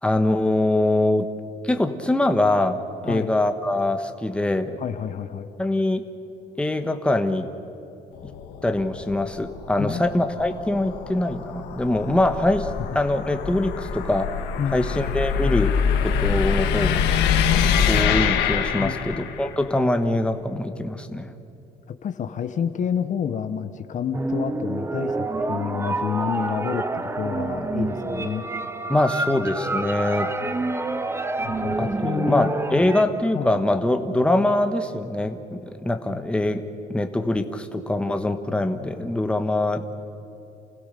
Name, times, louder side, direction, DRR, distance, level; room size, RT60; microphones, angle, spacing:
voice 1, 0.0-1.3 1.6-4.7 5.6-6.0 6.6-7.5 8.6-14.4 14.7-15.8 16.0-17.0 17.8-21.3 28.9-30.3 31.8-31.9 32.3-36.6 36.9-40.0, left 1 dB, 5° left, 7 dB, 1.3 m, -23 dB
voice 2, 4.8-5.5 9.8-10.1 14.6-14.9 18.8-19.2 21.9-28.5 31.4-32.9 33.3-33.6, left 8 dB, 45° left, 9 dB, 1.0 m, -29 dB
sound 1, 8.2-19.5, left 7 dB, 90° left, 1.7 m, -25 dB
sound 2, 24.1-33.0, right 2 dB, 15° right, 0.8 m, -28 dB
28.5 x 16.0 x 6.8 m, 2.8 s
cardioid pair, 110°, 17 cm